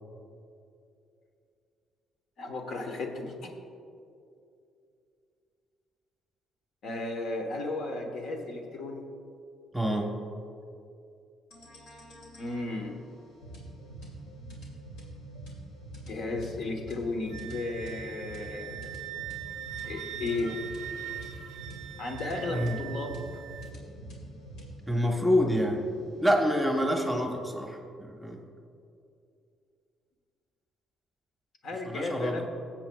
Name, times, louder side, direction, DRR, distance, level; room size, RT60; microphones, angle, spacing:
voice 1, 2.4-3.5 6.8-9.0 12.4-12.9 16.0-19.0 19.8-20.6 22.0-23.2 31.6-32.5, left 2 dB, 65° left, 3 dB, 1.2 m, -34 dB
voice 2, 9.7-10.1 22.5-22.8 24.9-25.8 26.2-28.4 31.8-32.4, equal, 5° right, 1 dB, 1.1 m, -27 dB
sound 1, 11.5-26.9, right 1 dB, 85° left, 2.4 m, -46 dB
Wind instrument woodwind instrument, 17.3-23.7, right 11 dB, 85° right, 0.5 m, -42 dB
19.0 x 7.6 x 2.3 m, 2.6 s
cardioid pair, 110°, 0 cm